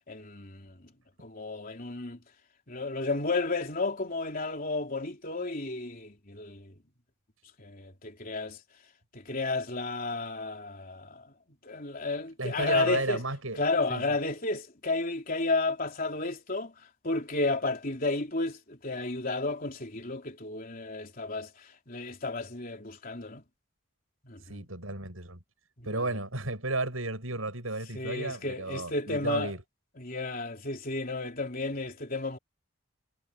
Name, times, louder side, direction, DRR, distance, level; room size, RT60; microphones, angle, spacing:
voice 1, 0.1-0.9 1.2-2.2 2.7-6.7 7.6-8.6 9.1-11.2 11.6-13.2 13.6-16.7 17.0-23.4 24.2-24.6 25.8-26.0 27.9-29.5 30.0-32.4, left 3 dB, 40° left, 3.7 m, -32 dB
voice 2, 12.4-13.6 13.9-14.2 24.5-25.4 25.8-29.6, right 2 dB, 75° right, 7.1 m, -33 dB
head